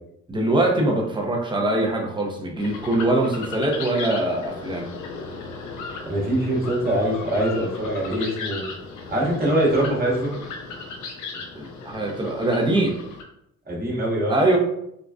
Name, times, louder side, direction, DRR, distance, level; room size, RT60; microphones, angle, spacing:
voice 1, 0.3-4.9 11.6-13.0 14.3-14.6, right 1 dB, 15° right, 0 dB, 0.7 m, -22 dB
sound 1, 2.6-13.2, left 4 dB, 85° left, 0.6 m, -36 dB
voice 2, 6.1-8.6 9.1-10.3 13.7-14.3, right 1 dB, 30° right, -4 dB, 1.3 m, -23 dB
3.8 x 2.3 x 2.4 m, 0.78 s
cardioid pair, 90°, 30 cm